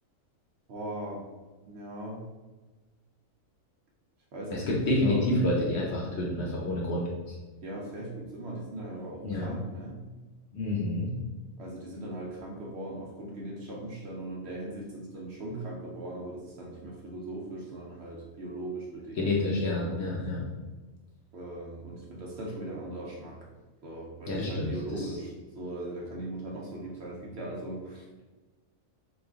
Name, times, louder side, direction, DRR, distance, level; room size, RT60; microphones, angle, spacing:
voice 1, 0.7-1.2 1.7-2.2 4.3-4.7 5.0-5.3 7.6-10.0 11.6-19.3 19.8-20.1 21.3-23.4 23.8-28.2, right 1 dB, 60° right, -3 dB, 0.8 m, -39 dB
voice 2, 4.5-7.3 9.2-9.5 10.5-11.1 19.2-20.4 24.3-25.1, left 1 dB, 60° left, -3 dB, 0.8 m, -28 dB
3.1 x 2.3 x 3.5 m, 1.2 s
omnidirectional pair, 1.4 m